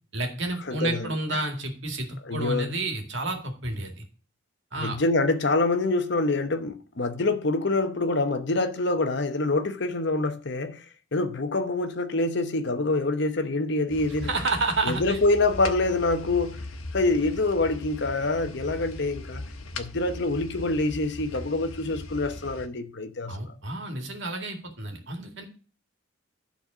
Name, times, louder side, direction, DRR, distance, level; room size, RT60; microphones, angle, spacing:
voice 1, 0.1-4.0 4.7-5.0 14.2-15.2 23.3-25.5, right 2 dB, 55° right, 2.0 m, -30 dB
voice 2, 0.7-1.1 2.3-2.7 4.8-10.8 11.1-14.3 14.8-16.6 16.9-19.4 19.8-23.5, left 2 dB, 55° left, 0.9 m, -26 dB
sound 1, 13.9-22.7, left 2 dB, 80° left, 1.1 m, -39 dB
11.5 x 4.1 x 6.1 m
head